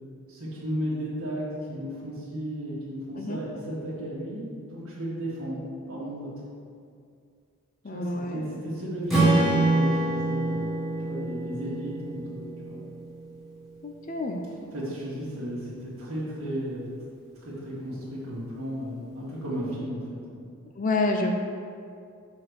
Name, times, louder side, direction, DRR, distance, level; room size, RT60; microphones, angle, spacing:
voice 1, 0.3-6.3 7.9-10.7 11.0-12.8 14.7-16.9 17.3-20.5, equal, 75° right, -7 dB, 1.8 m, -34 dB
voice 2, 7.8-8.5 13.8-14.4 20.8-21.4, left 2 dB, 40° left, 3 dB, 0.5 m, -28 dB
Strum, 9.1-13.4, right 2 dB, ahead, 1.5 m, -26 dB
5.9 x 4.3 x 6.3 m, 2.3 s
head